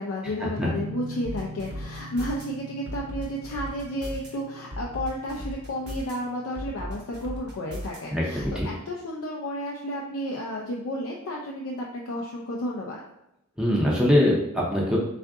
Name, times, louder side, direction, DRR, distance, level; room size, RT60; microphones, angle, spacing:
voice 1, 0.0-13.0, equal, 70° left, -2 dB, 0.5 m, -32 dB
sound 1, 0.5-8.1, equal, 75° right, 0.6 m, -43 dB
sound 2, 1.2-2.4 2.9-4.3 4.7-6.1 6.5-8.0 8.4-8.6, equal, 50° right, 1.0 m, -36 dB
voice 2, 8.1-8.7 13.6-15.0, left 1 dB, 5° right, -4 dB, 0.6 m, -22 dB
3.7 x 2.5 x 3.5 m, 0.84 s
head